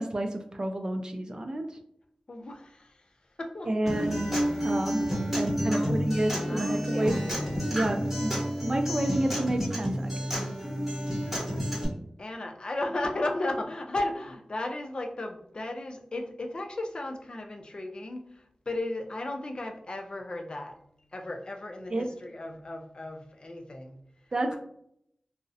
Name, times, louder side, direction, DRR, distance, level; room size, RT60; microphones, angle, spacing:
voice 1, 0.0-1.8 3.7-4.3 4.6-7.2 7.7-8.3 8.6-10.3 21.9-22.1 24.3-24.6, right 1 dB, 40° right, 5 dB, 0.4 m, -30 dB
voice 2, 2.3-2.9 3.4-3.7 4.0-4.1 5.7-6.0 6.4-7.2 12.2-20.8 21.1-24.0, left 2 dB, 45° left, 4 dB, 0.4 m, -35 dB
Acoustic guitar, 3.9-11.8, equal, 10° right, 1.1 m, -30 dB
2.4 x 2.0 x 2.6 m, 0.70 s
wide cardioid pair, 90°, 2 cm